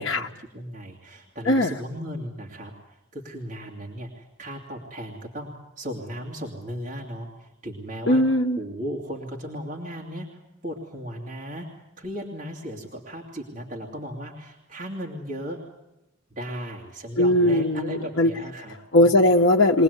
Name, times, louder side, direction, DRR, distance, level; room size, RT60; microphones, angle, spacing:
voice 1, 0.0-8.2 8.6-11.7 12.0-15.6 16.3-19.1, equal, 35° right, -2 dB, 2.5 m, -36 dB
voice 2, 8.1-8.6 17.2-17.8 18.2-18.3 18.9-19.8, left 1 dB, 70° left, -1 dB, 0.9 m, -19 dB
22.5 x 19.0 x 8.1 m, 0.94 s
head